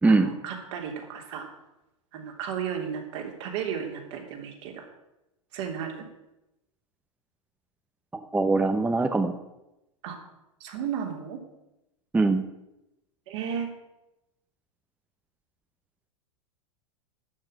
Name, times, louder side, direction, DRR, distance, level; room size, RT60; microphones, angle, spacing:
voice 1, 0.1-1.5 2.1-4.8 5.5-6.1 10.0-10.2 10.6-11.4 13.3-13.7, right 7 dB, 60° right, 2 dB, 3.1 m, -34 dB
voice 2, 8.1-9.3 12.1-12.4, right 3 dB, 10° right, 8 dB, 0.8 m, -22 dB
12.0 x 6.0 x 8.9 m, 0.92 s
hypercardioid pair, 100°, 17 cm